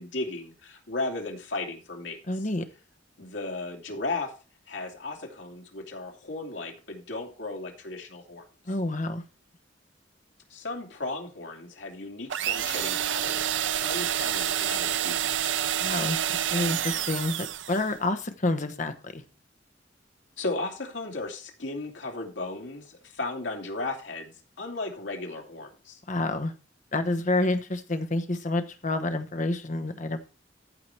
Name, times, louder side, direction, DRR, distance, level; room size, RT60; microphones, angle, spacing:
voice 1, 0.0-2.2 3.2-4.3 4.7-8.4 10.5-13.4 13.8-15.5 20.4-24.3 24.6-26.0, left 2 dB, 75° left, 2 dB, 2.5 m, -35 dB
voice 2, 2.3-2.7 8.7-9.2 15.8-16.2 16.5-19.2 26.1-26.5 26.9-30.2, left 2 dB, 45° left, 7 dB, 1.1 m, -28 dB
sound 1, 12.3-17.9, right 10 dB, 90° right, 0.5 m, -28 dB
14.5 x 4.8 x 4.5 m, 0.34 s
head